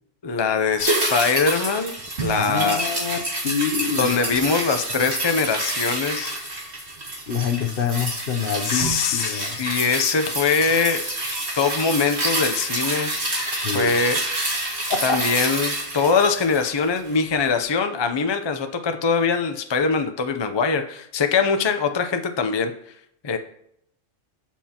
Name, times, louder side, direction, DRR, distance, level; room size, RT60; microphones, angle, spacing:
voice 1, 0.2-1.9 2.2-2.8 4.0-6.3 8.6-11.1 11.6-13.1 13.5-14.2 15.0-22.7 23.2-23.4, left 5 dB, 35° left, 7 dB, 0.4 m, -22 dB
sound 1, 0.8-17.3 17.6-17.7, right 2 dB, 55° right, 2.3 m, -28 dB
voice 2, 2.3-3.2 3.4-4.2 7.3-9.6 13.6-13.9, left 7 dB, 55° left, 6 dB, 0.8 m, -26 dB
11.5 x 7.3 x 2.9 m, 0.72 s
omnidirectional pair, 1.3 m